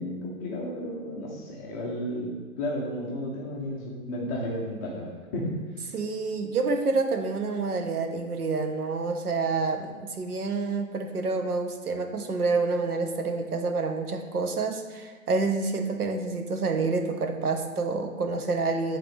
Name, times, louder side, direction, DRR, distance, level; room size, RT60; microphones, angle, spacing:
voice 1, 0.0-2.3 2.6-5.6, left 1 dB, 15° left, -4 dB, 0.5 m, -33 dB
voice 2, 5.9-19.0, right 3 dB, 90° right, 5 dB, 0.9 m, -28 dB
8.6 x 3.8 x 3.3 m, 1.5 s
figure-of-eight pair, 130°, 43 cm